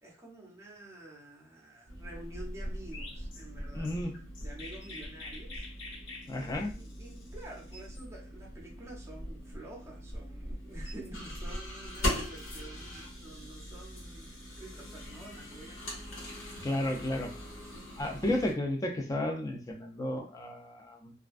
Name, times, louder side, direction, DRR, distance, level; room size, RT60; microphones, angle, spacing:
voice 1, 0.0-4.0 4.4-5.7 6.4-16.2, right 1 dB, 15° right, -2 dB, 0.7 m, -49 dB
sound 1, 1.9-18.5, equal, 90° left, 1.1 m, -41 dB
Chirp tweet, 2.9-8.1, left 3 dB, 65° left, 0.6 m, -48 dB
voice 2, 3.7-4.1 6.3-6.7 16.6-17.3 18.0-21.1, left 1 dB, 20° left, 3 dB, 0.4 m, -32 dB
2.4 x 2.2 x 2.4 m, 0.36 s
head